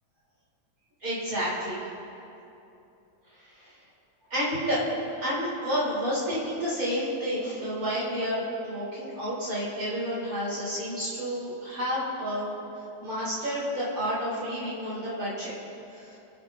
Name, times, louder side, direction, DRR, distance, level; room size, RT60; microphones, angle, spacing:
voice 1, 1.0-1.9 4.3-4.8 5.2-12.6 13.0-15.5, equal, 55° right, -9 dB, 3.6 m, -30 dB
28.0 x 9.4 x 2.5 m, 2.8 s
omnidirectional pair, 1.8 m